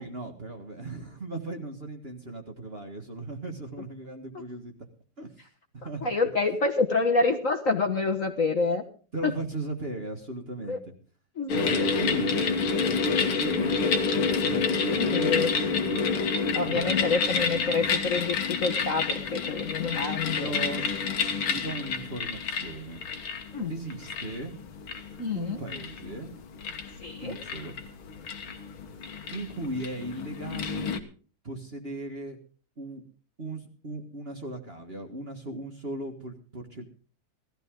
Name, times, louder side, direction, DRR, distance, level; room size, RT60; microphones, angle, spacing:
voice 1, 0.0-4.7 5.2-5.4 5.7-6.1 9.1-10.9 11.5-13.8 14.1-16.2 16.6-16.9 17.5-17.6 20.3-20.8 21.5-23.0 23.7-24.6 25.3-26.4 27.2-27.8 29.3-30.9 31.4-32.4 32.8-33.0 33.4-36.8, right 2 dB, 30° right, 3 dB, 1.6 m, -37 dB
voice 2, 6.0-8.8 9.2-9.3 10.7-10.8 11.4-11.5 14.9-15.5 16.5-20.5 23.5-23.7 25.2-25.6 27.0-27.4, left 3 dB, 40° left, 4 dB, 1.6 m, -27 dB
sound 1, 11.5-31.0, left 5 dB, 75° left, 2.2 m, -29 dB
18.0 x 13.5 x 3.7 m, 0.40 s
omnidirectional pair, 2.3 m